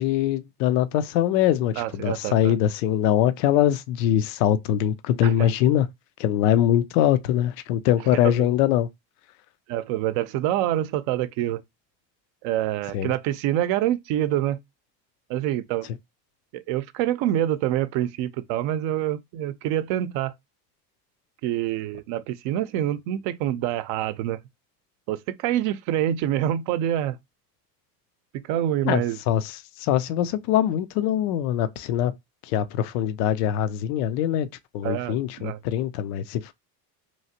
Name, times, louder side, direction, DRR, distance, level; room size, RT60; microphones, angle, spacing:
voice 1, 0.0-5.9 6.2-8.9 12.9-13.1 28.8-32.1 32.4-34.5 34.7-36.5, left 11 dB, 75° left, 0.5 m, -23 dB
voice 2, 1.8-2.5 5.2-5.5 8.2-8.5 9.7-11.6 12.4-14.6 15.3-15.9 16.5-20.3 21.4-24.4 25.1-27.2 28.5-29.2 34.8-35.6, right 12 dB, 65° right, 0.6 m, -26 dB
3.1 x 2.4 x 2.7 m
hypercardioid pair, 80°, 49 cm